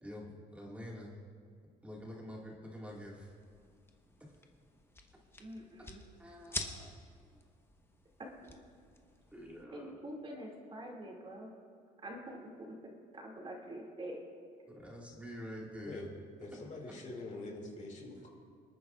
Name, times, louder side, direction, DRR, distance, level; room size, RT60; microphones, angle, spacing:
voice 1, 0.0-1.1 1.8-3.3 6.2-6.9 7.3-7.4 9.3-10.0 14.7-16.1 16.5-16.6 16.9-17.0, equal, 10° right, -3 dB, 1.9 m, -47 dB
sound 1, 2.9-9.6, left 2 dB, 15° left, 1.0 m, -48 dB
voice 2, 5.4-6.0 9.7-11.5 12.0-12.4 13.1-14.2, right 1 dB, 30° right, -1 dB, 2.3 m, -45 dB
voice 3, 16.4-18.3, left 2 dB, 45° left, 0 dB, 2.4 m, -44 dB
26.0 x 9.2 x 2.4 m, 2.2 s
cardioid pair, 110°, 17 cm